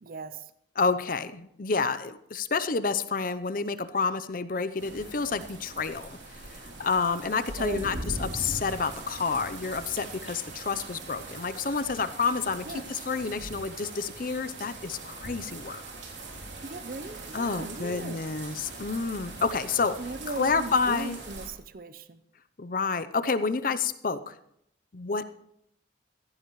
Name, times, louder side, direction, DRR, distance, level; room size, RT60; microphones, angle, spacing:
voice 1, 0.0-0.5 7.6-7.9 12.7-12.8 16.6-18.3 20.0-22.2, right 3 dB, 50° right, 12 dB, 0.6 m, -38 dB
voice 2, 0.8-6.2 6.5-15.8 17.3-20.0 20.3-21.2 22.6-24.3 24.9-25.2, left 4 dB, 50° left, 12 dB, 0.6 m, -29 dB
sound 1, 4.8-21.5, right 2 dB, 80° right, 3.1 m, -41 dB
15.5 x 15.0 x 3.1 m, 0.73 s
head